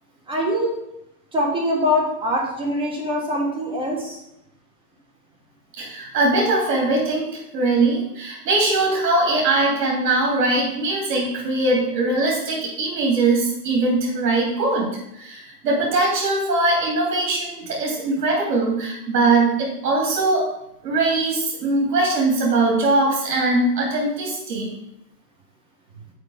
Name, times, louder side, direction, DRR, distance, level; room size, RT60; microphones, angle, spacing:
voice 1, 0.3-0.7 1.3-4.2, left 1 dB, 10° right, -2 dB, 1.4 m, -23 dB
voice 2, 5.8-20.5 20.8-24.7, right 2 dB, 75° right, -2 dB, 2.8 m, -21 dB
6.5 x 4.8 x 6.4 m, 0.81 s
hypercardioid pair, 150°, 48 cm